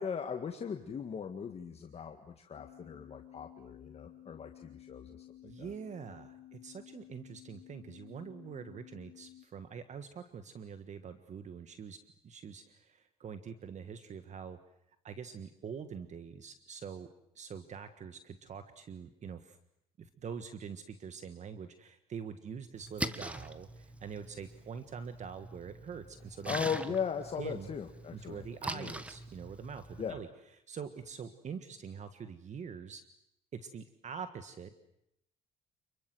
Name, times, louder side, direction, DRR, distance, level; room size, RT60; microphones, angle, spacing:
voice 1, 0.0-5.3 5.6-5.7 26.5-28.4 28.7-28.9 30.0-30.2, left 7 dB, 35° left, 5 dB, 1.9 m, -38 dB
sound 1, 2.6-9.5, left 13 dB, 80° left, 2.4 m, -54 dB
voice 2, 5.4-12.0 12.2-14.6 15.0-17.1 17.3-19.6 20.0-26.6 27.4-27.7 28.1-30.3 30.7-33.0 33.5-34.9, right 6 dB, 45° right, 10 dB, 1.5 m, -45 dB
Splash splatter, 22.7-30.1, right 1 dB, 10° right, 1.5 m, -43 dB
28.5 x 22.5 x 7.8 m, 0.78 s
cardioid pair, 110°, 17 cm